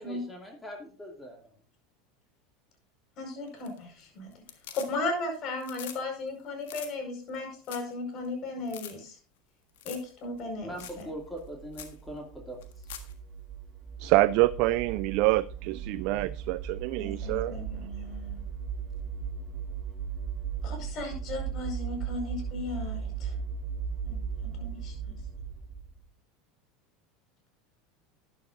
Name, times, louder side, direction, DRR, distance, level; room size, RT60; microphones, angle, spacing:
voice 1, 0.0-1.4 10.6-12.6, equal, 15° left, 2.5 m, -41 dB
voice 2, 3.2-4.4 4.7-9.2 9.8-11.1 17.0-18.4 20.6-23.3 24.0-25.1, left 2 dB, 50° left, 5.1 m, -36 dB
sound 1, 3.5-4.0 4.3-5.2 5.5-6.0 6.3-6.4 6.6-6.9 7.3-7.4 7.6-7.9 8.2-8.3 8.7-8.9 9.8-10.1 10.4-10.5 10.8-11.0 11.4-11.5 11.7-12.0 12.6-13.1 15.3-15.4, left 10 dB, 80° left, 1.5 m, -44 dB
sound 2, 10.7-26.0, right 6 dB, 30° right, 2.0 m, -37 dB
voice 3, 14.0-17.6, right 18 dB, 65° right, 0.3 m, -26 dB
12.0 x 10.5 x 2.6 m
supercardioid pair, 100°, 0 cm